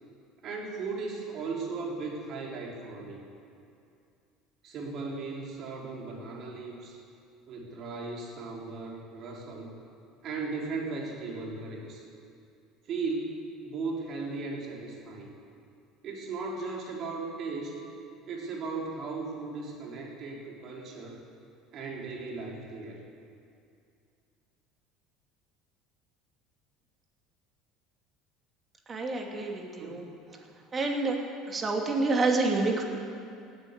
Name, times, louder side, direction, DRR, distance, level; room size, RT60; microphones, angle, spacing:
voice 1, 0.4-3.3 4.6-7.0 7.5-9.7 10.2-12.0 12.9-15.3 16.0-17.8 18.3-21.2 21.7-23.0 29.8-30.2, right 3 dB, 50° right, -2 dB, 4.0 m, -37 dB
voice 2, 28.9-30.0 30.7-31.2 31.5-32.8, right 3 dB, 30° right, 1 dB, 3.0 m, -28 dB
17.5 x 9.4 x 8.4 m, 2.5 s
hypercardioid pair, 70°, 0 cm